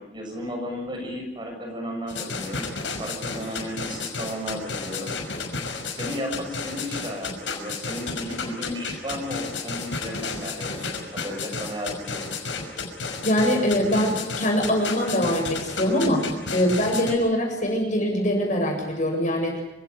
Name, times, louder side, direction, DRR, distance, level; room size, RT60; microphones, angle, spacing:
voice 1, 0.0-2.7 3.0-5.1 5.9-12.3, equal, 25° right, 2 dB, 6.8 m, -34 dB
sound 1, 2.1-17.1, left 4 dB, 80° left, 5.8 m, -32 dB
voice 2, 13.2-19.5, equal, 40° left, 1 dB, 7.9 m, -23 dB
27.5 x 17.5 x 9.5 m, 0.94 s
head